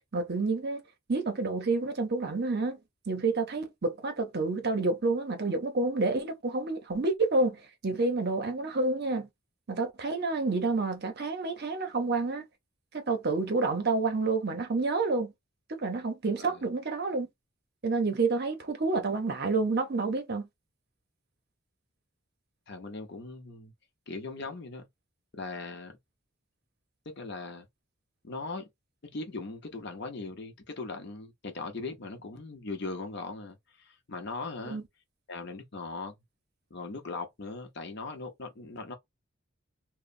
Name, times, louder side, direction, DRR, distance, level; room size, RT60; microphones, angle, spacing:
voice 1, 0.1-0.8 1.1-2.8 3.1-9.3 9.7-12.4 12.9-15.3 15.7-17.3 17.8-20.5 34.6-34.8, right 3 dB, 50° right, 0.7 m, -29 dB
voice 2, 16.3-16.7 22.7-23.7 24.1-24.9 25.3-26.0 27.1-27.7 28.2-28.7 29.0-34.8 35.3-36.2 36.7-39.0, left 3 dB, 55° left, 0.8 m, -39 dB
3.0 x 2.1 x 2.5 m
head